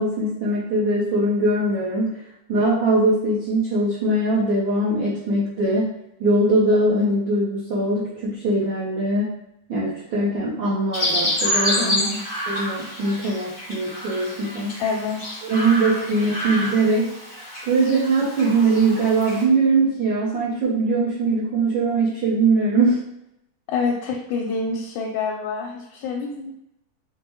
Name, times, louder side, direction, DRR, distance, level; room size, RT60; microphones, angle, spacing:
voice 1, 0.0-2.2 2.5-5.9 6.2-9.3 9.7-12.0 12.5-14.7 15.4-17.1 17.7-23.0, right 2 dB, 75° right, -9 dB, 1.1 m, -21 dB
Chirp tweet, 10.9-19.4, left 1 dB, 45° left, 0.6 m, -28 dB
voice 2, 11.8-12.2 14.8-15.4 23.7-26.5, left 4 dB, 85° left, -1 dB, 2.0 m, -27 dB
5.1 x 2.1 x 3.0 m, 0.82 s
omnidirectional pair, 3.4 m